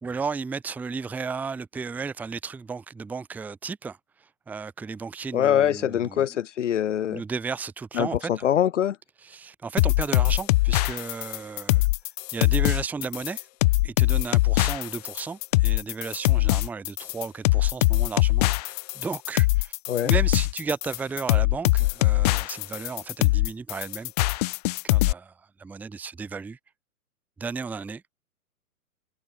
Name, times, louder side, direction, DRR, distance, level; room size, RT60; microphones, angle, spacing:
voice 1, 0.0-6.3 7.1-8.4 9.2-11.8 12.3-13.5 13.8-19.7 20.0-24.1 24.8-26.6 27.4-28.0, right 5 dB, 5° right, 0.9 m, -34 dB
voice 2, 5.3-7.2 7.9-9.0 19.9-20.1, left 10 dB, 55° left, 0.7 m, -23 dB
sound 1, 9.8-25.1, left 20 dB, 25° left, 1.1 m, -22 dB
figure-of-eight pair, 120°, 43 cm